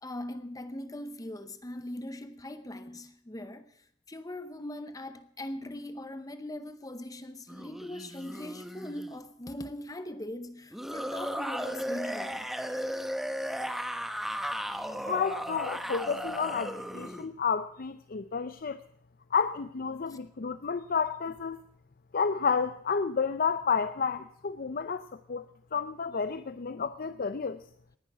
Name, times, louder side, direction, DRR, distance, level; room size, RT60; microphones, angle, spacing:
voice 1, 0.0-12.5 20.1-20.2, left 1 dB, 20° left, 0.7 m, -40 dB
sound 1, 7.5-9.2 10.7-17.3, equal, ahead, 1.0 m, -35 dB
voice 2, 15.0-18.8 19.3-21.6 22.1-27.6, left 5 dB, 45° left, 0.5 m, -31 dB
19.0 x 10.5 x 6.0 m
head